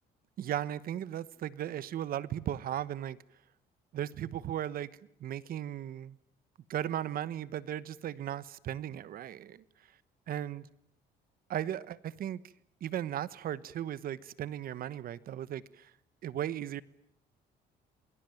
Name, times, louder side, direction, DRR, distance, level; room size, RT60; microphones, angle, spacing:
voice 1, 0.4-3.2 3.9-4.9 5.2-6.2 6.7-9.6 10.3-10.6 11.5-12.4 12.8-15.9 16.2-16.8, right 11 dB, 60° right, 1.3 m, -36 dB
28.5 x 21.5 x 9.3 m
cardioid pair, 110°, 17 cm